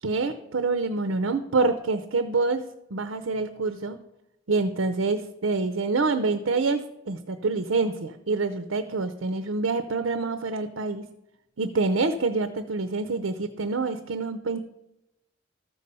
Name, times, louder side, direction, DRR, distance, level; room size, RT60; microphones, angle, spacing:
voice 1, 0.0-2.6 2.9-4.0 4.5-11.1 11.6-14.6, right 3 dB, 85° right, 11 dB, 0.7 m, -26 dB
13.5 x 5.4 x 6.9 m, 0.87 s
head